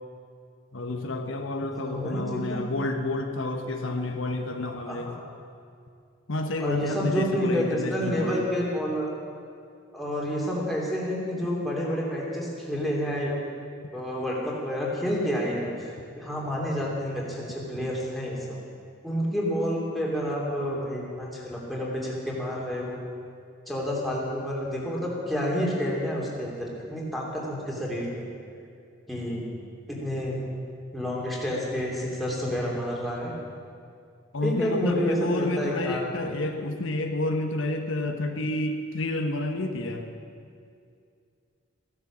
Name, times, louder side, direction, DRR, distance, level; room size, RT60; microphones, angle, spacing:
voice 1, 0.7-5.1 6.3-8.4 34.3-40.1, left 2 dB, 80° left, 4 dB, 1.2 m, -30 dB
voice 2, 1.7-2.6 4.9-5.2 6.6-9.1 9.9-13.4 13.9-15.9 16.2-18.6 19.0-23.0 23.7-28.2 29.1-29.4 29.9-30.4 30.9-33.3 34.4-36.1, equal, ahead, -5 dB, 2.9 m, -29 dB
15.5 x 11.0 x 7.5 m, 2.3 s
head